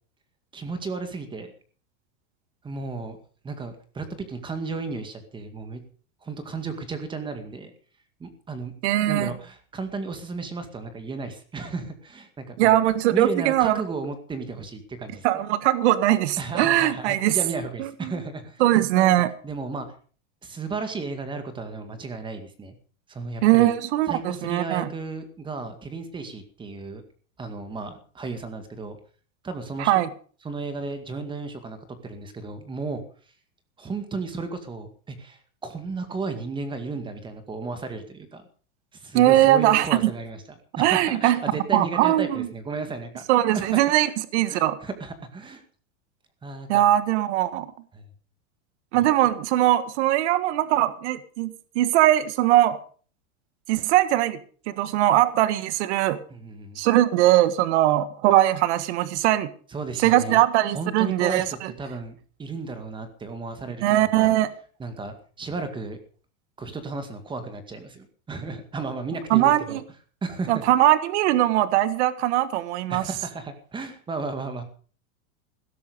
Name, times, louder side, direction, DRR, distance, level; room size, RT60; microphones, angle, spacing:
voice 1, 0.5-1.5 2.6-3.2 3.4-5.8 6.2-7.7 8.2-8.7 9.1-12.8 13.1-15.4 16.4-18.6 18.9-19.9 20.4-22.8 23.1-23.7 24.1-27.0 27.4-29.0 29.4-30.0 30.4-33.0 33.8-38.4 38.9-40.4 40.8-43.3 43.5-44.1 44.5-45.6 46.4-46.8 47.9-48.1 48.9-49.1 56.3-56.8 59.7-60.4 60.7-64.3 64.8-66.0 66.6-69.8 70.2-70.7 72.9-74.6, right 4 dB, 10° right, 9 dB, 2.1 m, -34 dB
voice 2, 8.8-9.3 12.6-13.8 15.2-17.4 17.8-18.1 18.6-19.3 23.4-24.9 29.8-30.1 39.1-40.1 40.8-41.4 41.7-42.5 43.3-44.8 46.7-47.7 48.9-52.8 53.7-54.4 54.7-56.2 56.8-59.5 60.0-61.7 63.8-64.5 69.3-69.8 70.5-73.0, right 14 dB, 55° right, 14 dB, 1.6 m, -21 dB
16.5 x 13.0 x 5.2 m, 0.42 s
supercardioid pair, 160°, 40 cm